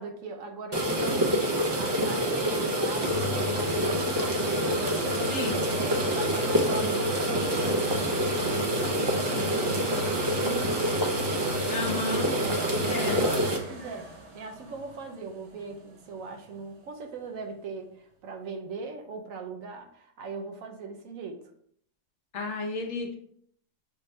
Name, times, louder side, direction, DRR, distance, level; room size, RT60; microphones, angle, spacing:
voice 1, 0.0-8.9 9.3-11.7 12.4-21.4, right 4 dB, 85° right, 4 dB, 1.1 m, -39 dB
sound 1, 0.7-13.6, equal, 40° right, 0.3 m, -27 dB
sound 2, 3.0-16.7 17.3-17.4, equal, 60° right, 1.1 m, -38 dB
voice 2, 5.3-5.6 11.7-12.3 12.9-13.2 22.3-23.2, left 3 dB, 65° left, 3 dB, 1.0 m, -32 dB
5.9 x 2.7 x 3.2 m, 0.66 s
omnidirectional pair, 1.4 m